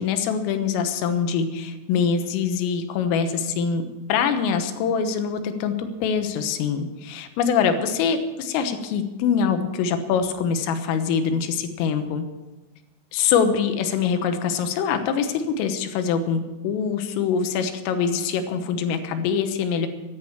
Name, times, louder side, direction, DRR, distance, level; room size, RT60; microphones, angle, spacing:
voice 1, 0.0-12.2 13.1-19.9, left 6 dB, 85° left, 8 dB, 3.8 m, -24 dB
14.5 x 10.5 x 7.2 m, 1.1 s
omnidirectional pair, 5.8 m